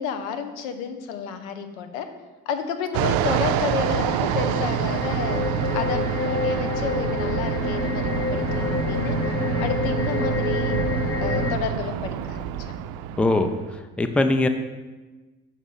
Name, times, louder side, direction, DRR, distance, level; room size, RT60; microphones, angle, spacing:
voice 1, 0.0-2.1 2.5-5.5 5.7-9.2 9.6-10.8 11.2-12.7, left 7 dB, 85° left, 8 dB, 0.7 m, -31 dB
Fixed-wing aircraft airplane, 2.9-13.8, right 12 dB, 60° right, 0.5 m, -27 dB
sound 1, 3.1-11.6, left 4 dB, 35° left, 0.9 m, -28 dB
voice 2, 13.2-14.5, left 2 dB, 5° left, 7 dB, 0.5 m, -22 dB
6.1 x 4.1 x 5.5 m, 1.2 s
hypercardioid pair, 50°, 41 cm